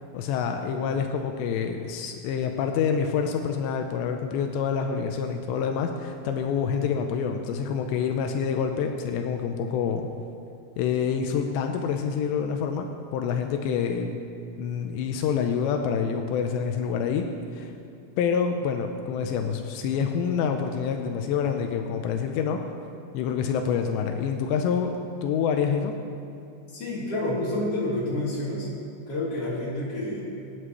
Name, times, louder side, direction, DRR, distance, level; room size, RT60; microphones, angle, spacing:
voice 1, 0.1-10.1 10.8-12.9 13.1-14.2 14.6-17.3 17.5-17.7 18.2-22.6 23.1-24.9 25.2-25.9, left 7 dB, 90° left, 4 dB, 2.5 m, -27 dB
voice 2, 26.7-28.7 29.1-30.2, left 1 dB, 35° left, -7 dB, 3.9 m, -29 dB
23.0 x 9.9 x 3.2 m, 2.6 s
omnidirectional pair, 5.7 m